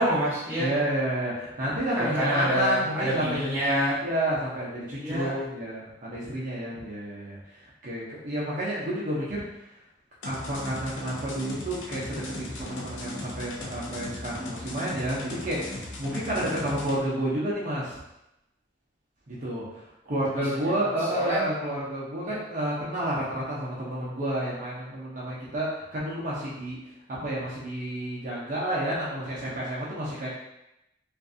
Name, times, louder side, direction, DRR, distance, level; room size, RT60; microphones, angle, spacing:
voice 1, 0.0-0.7 2.0-4.0 4.9-5.3 20.4-20.5 21.1-21.4 22.3-22.4, equal, 10° right, -9 dB, 0.8 m, -27 dB
voice 2, 0.6-3.5 4.0-7.4 7.8-9.4 10.2-18.0 19.3-26.8 27.2-30.3, right 1 dB, 45° right, -7 dB, 0.6 m, -30 dB
sound 1, 10.2-17.0, left 1 dB, 85° left, 0.5 m, -38 dB
2.5 x 2.4 x 2.5 m, 0.89 s
head